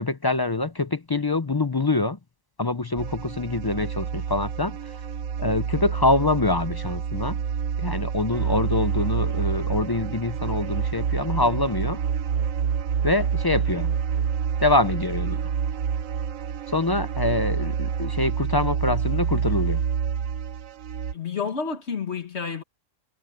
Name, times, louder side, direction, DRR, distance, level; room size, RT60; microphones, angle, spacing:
voice 1, 0.0-2.2 2.6-4.9 5.4-7.4 7.8-12.0 13.0-13.9 14.6-15.4 16.7-19.8, left 2 dB, 30° left, 0.4 m, -25 dB
sound 1, 3.0-21.1, right 7 dB, 85° right, 1.3 m, -27 dB
voice 2, 21.1-22.6, left 5 dB, 60° left, 1.7 m, -30 dB
omnidirectional pair, 1.3 m